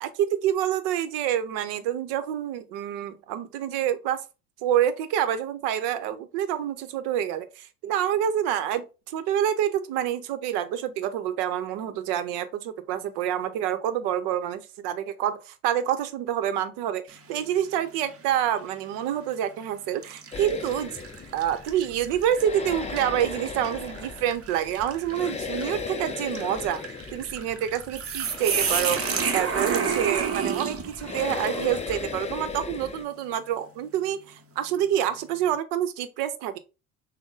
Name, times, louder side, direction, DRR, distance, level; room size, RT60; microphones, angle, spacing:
voice 1, 0.0-4.2 4.6-21.0 21.3-26.8 27.1-29.0 29.3-36.6, right 10 dB, 55° right, 0.8 m, -27 dB
sound 1, 17.1-17.6 18.1-18.2 19.2-19.4 20.0-32.0, right 6 dB, 30° right, 0.9 m, -32 dB
sound 2, 20.3-33.0, left 5 dB, 15° left, 0.5 m, -37 dB
6.1 x 2.2 x 3.7 m
hypercardioid pair, 80°, 47 cm